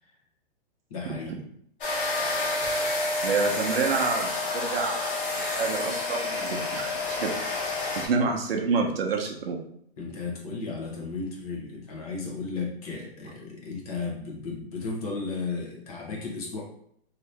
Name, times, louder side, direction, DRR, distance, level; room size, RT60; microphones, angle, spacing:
voice 1, 0.9-1.4 10.0-16.6, left 4 dB, 35° left, -1 dB, 0.7 m, -34 dB
sound 1, 1.8-8.1, left 3 dB, 50° left, 1.1 m, -29 dB
voice 2, 3.2-5.0 5.4-7.3 8.0-9.6, right 4 dB, 60° right, 2 dB, 0.7 m, -28 dB
2.8 x 2.6 x 3.2 m, 0.69 s
hypercardioid pair, 160°, 32 cm